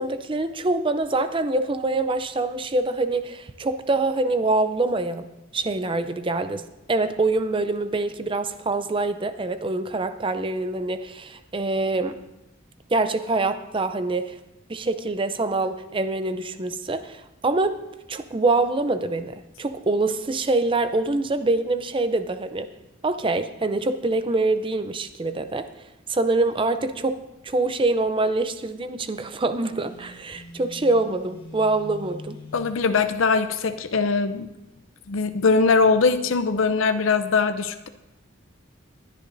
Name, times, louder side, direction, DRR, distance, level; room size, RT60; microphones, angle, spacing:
voice 1, 0.0-5.3 5.5-6.6 6.9-12.2 12.9-14.3 14.7-17.8 18.1-22.7 23.0-25.7 26.1-32.4, right 2 dB, 25° right, 10 dB, 0.5 m, -25 dB
Telephone, 29.7-32.9, left 2 dB, 25° left, 1.6 m, -43 dB
voice 2, 32.5-34.5 35.1-37.9, left 4 dB, 75° left, 10 dB, 0.6 m, -21 dB
20.5 x 10.0 x 2.7 m, 0.93 s
head